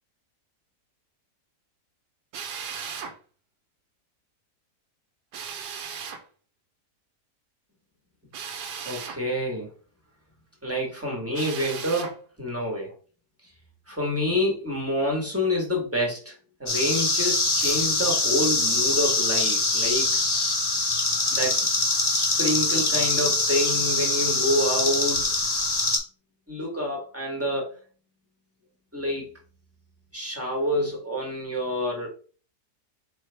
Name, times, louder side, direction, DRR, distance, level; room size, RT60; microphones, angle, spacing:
Drill, 2.3-3.1 5.3-6.2 8.3-9.2 11.3-12.1, right 6 dB, 85° right, 1.3 m, -36 dB
voice 1, 8.8-9.7 10.6-12.1 12.4-12.9 13.9-16.3 16.6-20.1 21.3-21.5 22.1-25.3 26.5-27.7 28.9-29.3 30.1-32.1, left 1 dB, 10° right, -1 dB, 1.3 m, -27 dB
sound 1, 16.7-26.0, left 2 dB, 40° left, 0.3 m, -24 dB
4.6 x 3.2 x 3.4 m, 0.39 s
omnidirectional pair, 1.7 m